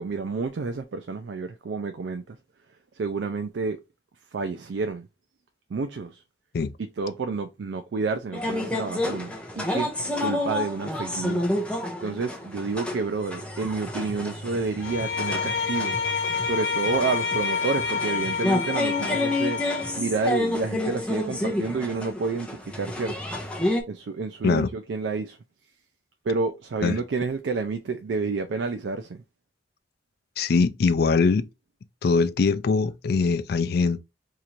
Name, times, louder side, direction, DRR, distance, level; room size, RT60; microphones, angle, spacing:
voice 1, 0.0-2.4 2.9-3.8 4.3-5.1 5.7-6.2 6.8-9.9 10.2-11.4 12.0-16.0 16.4-19.6 19.9-23.1 23.9-25.4 26.2-29.2, right 4 dB, 80° right, 0.4 m, -29 dB
sound 1, 8.3-23.8, left 1 dB, 5° left, 0.7 m, -30 dB
Bowed string instrument, 14.8-20.0, left 5 dB, 85° left, 0.8 m, -28 dB
voice 2, 30.4-31.5 32.0-34.0, left 4 dB, 60° left, 0.4 m, -22 dB
2.8 x 2.5 x 4.3 m
head